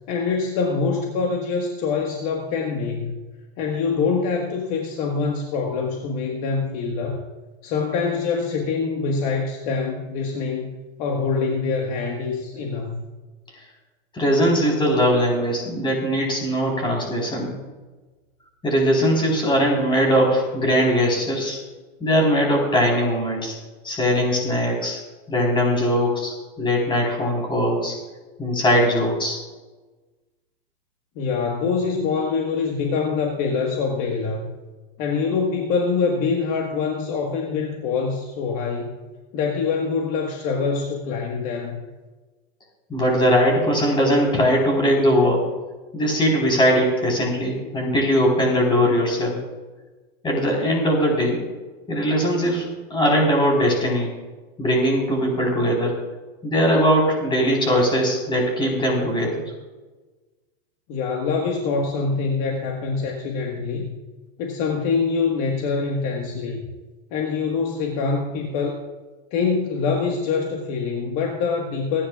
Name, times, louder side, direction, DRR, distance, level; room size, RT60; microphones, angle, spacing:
voice 1, 0.1-3.2 3.6-7.2 7.6-10.7 11.0-13.0 31.1-34.5 35.0-39.0 39.3-41.8 60.9-63.9 64.4-66.7 67.1-68.8 69.3-72.1, left 5 dB, 45° left, 1 dB, 1.7 m, -24 dB
voice 2, 14.1-17.6 18.6-21.6 22.0-23.5 23.8-25.0 25.3-27.9 28.4-29.4 42.9-45.4 45.9-49.4 50.2-51.4 51.9-54.1 54.6-55.9 56.4-59.4, equal, 15° left, -1 dB, 4.3 m, -20 dB
25.5 x 10.0 x 2.5 m, 1.3 s
supercardioid pair, 145°, 32 cm